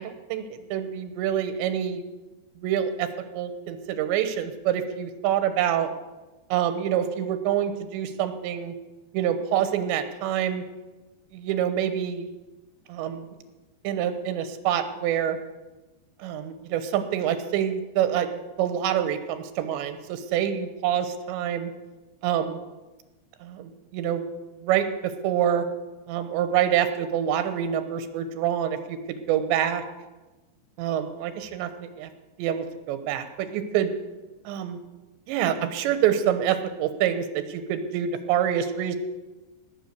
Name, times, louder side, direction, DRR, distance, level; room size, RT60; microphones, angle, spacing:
voice 1, 0.0-2.1 2.6-5.9 6.5-8.8 9.1-10.6 11.3-12.3 12.9-13.3 13.8-15.4 16.2-21.7 22.2-22.6 23.4-24.2 24.6-25.7 26.1-29.8 30.8-32.1 32.4-33.9 34.5-34.8 35.3-39.0, right 10 dB, 90° right, 10 dB, 3.3 m, -26 dB
18.0 x 7.3 x 8.1 m, 1.1 s
omnidirectional pair, 5.0 m